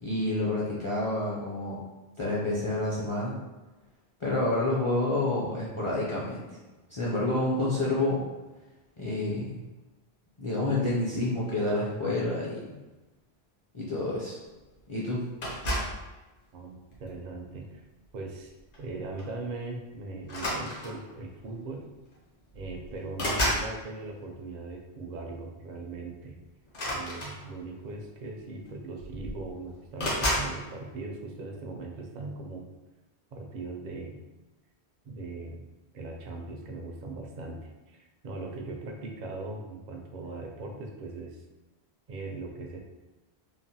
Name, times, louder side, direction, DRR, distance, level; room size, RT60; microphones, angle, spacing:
voice 1, 0.0-1.8 2.2-3.4 4.2-6.5 6.9-8.3 9.0-9.6 10.4-12.8 13.7-14.4 14.9-15.2, left 2 dB, 40° left, -7 dB, 0.5 m, -28 dB
sound 1, 15.4-16.0 16.9-17.2 18.7-18.9 19.2-19.4 20.2-21.1 22.1-22.2 22.5-23.7 26.7-27.8 28.7-28.8 29.0-29.5 30.0-30.5, equal, 60° left, 0.9 m, -31 dB
voice 2, 16.5-17.8 18.1-21.9 22.5-26.4 26.9-32.7 33.3-34.2 35.0-35.6 35.9-41.4 42.1-42.8, right 3 dB, 55° right, 1 dB, 0.5 m, -39 dB
3.1 x 2.1 x 2.7 m, 1.1 s
omnidirectional pair, 1.1 m